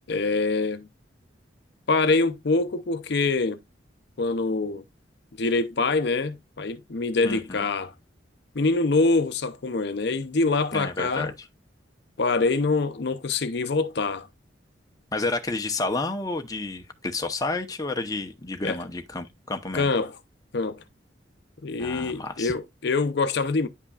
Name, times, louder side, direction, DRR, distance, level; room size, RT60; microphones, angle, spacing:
voice 1, 0.1-0.9 1.9-3.6 4.2-4.8 5.4-7.9 8.5-11.3 12.2-14.3 18.6-18.8 19.7-20.2 20.5-20.8 21.6-23.7, left 3 dB, 65° left, 0.6 m, -25 dB
voice 2, 7.2-7.6 10.7-11.3 15.1-19.9 21.8-22.5, left 2 dB, 20° left, 0.8 m, -30 dB
9.8 x 5.6 x 2.4 m
head